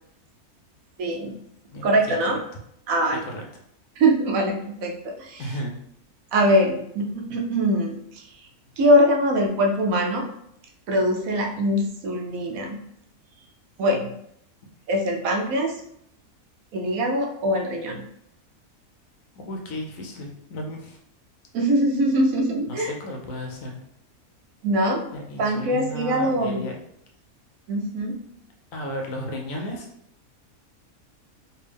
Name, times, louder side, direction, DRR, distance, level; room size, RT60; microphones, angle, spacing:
voice 1, 1.0-1.4 1.7-2.4 2.9-3.2 4.0-5.4 6.3-8.5 8.8-10.3 10.9-12.8 13.8-14.1 14.9-15.8 16.7-18.0 21.5-22.9 24.6-25.1 25.4-26.6 27.7-28.2, equal, 70° right, 2 dB, 1.0 m, -23 dB
voice 2, 1.7-2.1 3.2-3.4 5.4-5.8 19.3-21.0 22.7-23.8 25.1-26.8 28.7-29.9, equal, 70° left, 1 dB, 1.0 m, -34 dB
3.4 x 2.6 x 3.3 m, 0.72 s
omnidirectional pair, 1.6 m